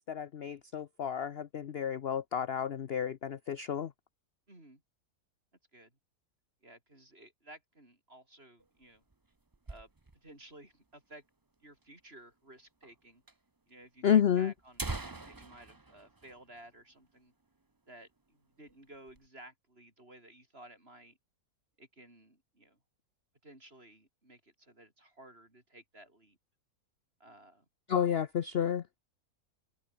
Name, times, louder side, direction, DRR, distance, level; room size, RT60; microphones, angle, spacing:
voice 1, 0.1-3.9 14.0-14.5 27.9-28.8, left 8 dB, 50° left, 0.8 m, -30 dB
voice 2, 4.5-4.8 5.7-5.9 6.6-9.0 9.7-11.2 11.6-13.2 13.7-17.3 17.9-21.2 21.8-22.8 23.4-26.4 27.2-27.7, right 1 dB, 40° right, 7.7 m, -55 dB
sound 1, 8.6-10.4 10.7-10.8 11.0-11.1 11.8-11.9 12.8-12.9 13.3-13.4 14.1-14.2 14.6-17.2 17.5-17.6 18.0-18.3 18.7-19.3, right 3 dB, 15° right, 0.8 m, -44 dB
open air
omnidirectional pair, 1.6 m